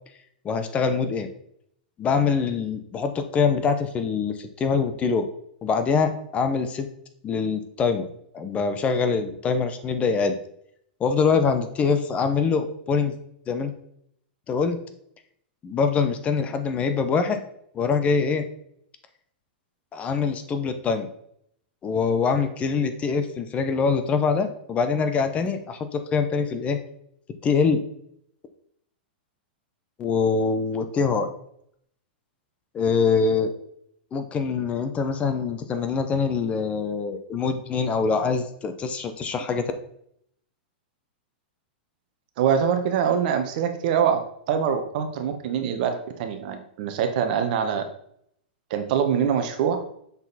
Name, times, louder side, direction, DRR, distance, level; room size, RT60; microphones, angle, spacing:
voice 1, 0.4-1.3 2.0-5.3 5.6-6.9 7.2-8.0 8.3-10.4 11.0-13.1 13.5-13.7 14.5-14.8 15.6-17.4 17.7-18.4 19.9-21.1 21.8-26.8 27.4-27.8 30.0-31.3 32.7-33.5 34.1-39.6, left 5 dB, 25° left, 8 dB, 0.7 m, -24 dB
voice 2, 42.4-44.2 44.5-47.8 48.7-49.8, right 8 dB, 55° right, 6 dB, 1.1 m, -24 dB
7.0 x 4.0 x 4.1 m, 0.70 s
hypercardioid pair, 135°, 5 cm